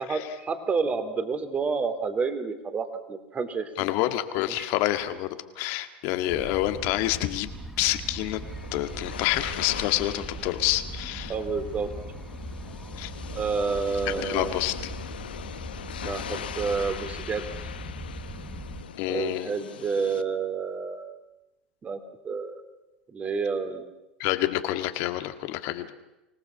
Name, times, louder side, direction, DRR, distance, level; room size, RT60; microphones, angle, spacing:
voice 1, 0.0-3.9 4.6-4.7 11.3-11.9 13.3-14.6 16.0-17.4 19.1-21.1 21.8-22.6 23.1-23.9, right 5 dB, 25° right, 8 dB, 3.2 m, -29 dB
voice 2, 3.8-5.3 5.6-7.5 7.8-8.4 8.7-11.3 13.0-13.1 14.1-14.9 19.0-19.5 24.2-25.9, left 15 dB, 55° left, 8 dB, 1.8 m, -27 dB
sound 1, 6.3-18.8, right 1 dB, 5° right, 3.5 m, -39 dB
sound 2, 8.0-20.2, left 9 dB, 80° left, 1.0 m, -41 dB
25.0 x 18.5 x 7.2 m, 0.97 s
hypercardioid pair, 90°, 5 cm